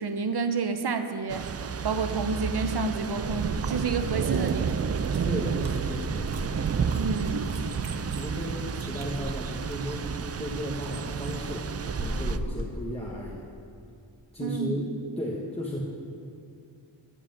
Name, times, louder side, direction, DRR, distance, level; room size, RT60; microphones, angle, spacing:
voice 1, 0.0-1.4 1.8-4.7 6.9-7.7 14.4-14.8, right 4 dB, 60° right, 8 dB, 1.0 m, -29 dB
Thunder / Rain, 1.3-12.4, right 6 dB, 35° right, 0.5 m, -31 dB
sound 1, 3.0-12.7, right 2 dB, 80° right, 1.3 m, -39 dB
voice 2, 5.2-6.3 8.2-13.5 14.3-14.9 15.2-15.8, equal, 15° left, -4 dB, 1.5 m, -35 dB
13.5 x 5.0 x 7.7 m, 2.4 s
cardioid pair, 55°, 45 cm